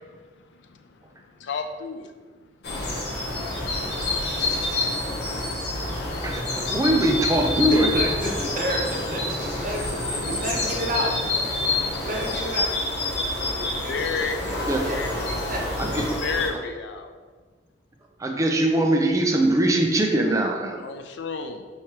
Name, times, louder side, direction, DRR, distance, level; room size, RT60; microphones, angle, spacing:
voice 1, 0.0-2.1 3.1-3.2 13.5-17.2 20.8-21.7, left 5 dB, 85° left, 6 dB, 0.4 m, -33 dB
sound 1, 2.6-16.5, left 2 dB, 65° left, 0.9 m, -27 dB
voice 2, 6.2-7.9 14.7-14.8 15.8-16.0 18.2-20.8, right 1 dB, 20° right, 2 dB, 0.4 m, -22 dB
voice 3, 7.7-11.1 12.0-12.8 13.1-13.4 14.8-15.0 15.5-15.6, equal, 50° right, -1 dB, 0.7 m, -30 dB
4.7 x 3.2 x 2.9 m, 1.4 s
head